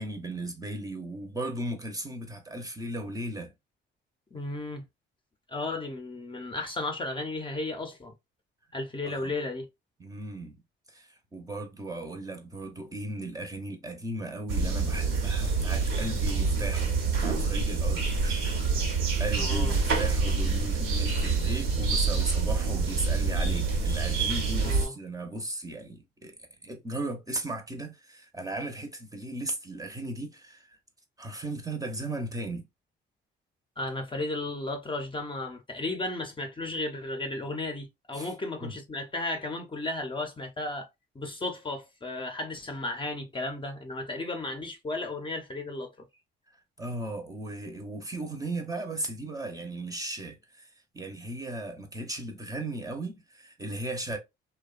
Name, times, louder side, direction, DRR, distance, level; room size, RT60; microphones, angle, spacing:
voice 1, 0.0-3.5 9.0-9.3 10.0-10.6 10.9-18.5 19.2-26.3 26.6-30.8 31.2-32.7 38.1-38.3 38.6-38.8 46.8-54.2, right 2 dB, 15° right, 0.7 m, -36 dB
voice 2, 4.3-4.8 5.5-8.1 8.7-9.7 19.4-19.8 24.6-24.9 33.8-40.9 41.1-46.1, left 2 dB, 25° left, 0.6 m, -34 dB
sound 1, 14.5-24.9, right 4 dB, 85° right, 0.9 m, -27 dB
2.7 x 2.2 x 2.4 m
cardioid pair, 90°, 20 cm